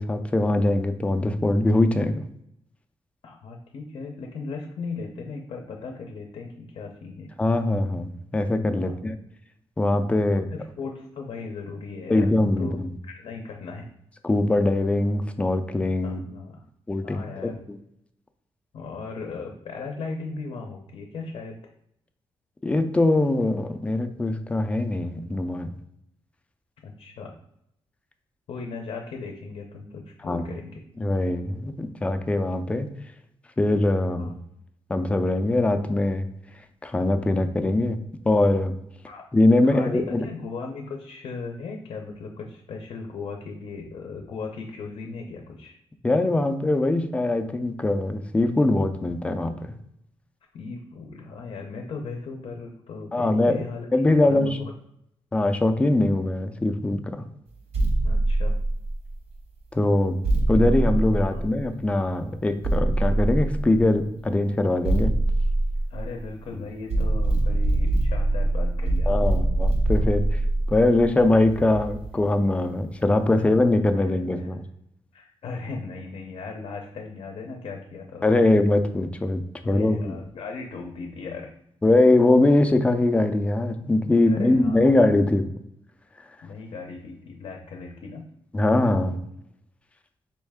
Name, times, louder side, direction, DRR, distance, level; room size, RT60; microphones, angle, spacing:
voice 1, 0.0-2.1 7.4-9.2 9.8-10.5 12.1-12.9 14.2-16.2 16.9-17.8 22.6-25.7 30.2-30.4 31.0-32.9 33.6-34.3 34.9-36.3 36.8-38.0 38.2-38.8 39.3-40.3 46.0-49.6 53.1-53.6 53.9-54.6 55.3-57.2 59.7-65.1 66.5-66.6 69.1-70.2 70.7-74.6 78.2-80.2 81.8-85.5 88.5-89.2, left 2 dB, 10° left, 7 dB, 0.3 m, -22 dB
voice 2, 3.2-7.3 8.7-9.0 10.3-13.9 16.0-16.6 17.0-17.6 18.7-21.6 26.8-27.3 28.5-30.8 34.2-34.3 39.1-39.2 39.6-45.7 50.5-53.9 54.2-54.7 58.0-58.5 61.3-61.4 65.9-69.1 74.0-74.1 74.4-74.5 75.1-78.4 79.7-81.5 84.3-85.0 86.4-88.3, left 4 dB, 65° left, 3 dB, 0.6 m, -37 dB
sound 1, 57.7-59.2 60.2-61.8 62.6-64.0 64.8-66.4 66.9-72.2, right 2 dB, 90° right, 1.2 m, -24 dB
4.3 x 3.1 x 3.5 m, 0.75 s
wide cardioid pair, 155°, 10 cm